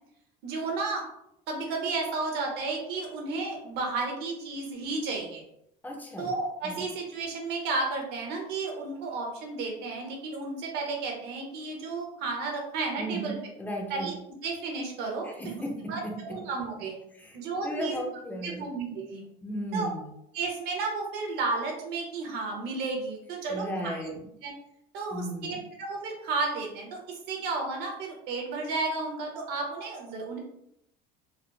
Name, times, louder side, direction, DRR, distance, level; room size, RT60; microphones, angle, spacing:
voice 1, 0.4-1.0 1.5-5.4 6.2-13.5 13.9-14.1 14.4-15.5 15.9-17.0 17.3-18.0 18.4-19.2 19.7-19.9 20.3-24.0 24.4-24.5 24.9-27.0 27.3-30.4, right 3 dB, 60° right, 1 dB, 1.0 m, -32 dB
voice 2, 5.8-6.3 6.6-6.8 13.0-14.2 15.2-16.4 17.1-18.7 19.4-20.1 23.5-24.3 25.1-25.6, right 1 dB, 10° left, 1 dB, 0.5 m, -35 dB
3.9 x 2.0 x 3.2 m, 0.78 s
cardioid pair, 150°, 19 cm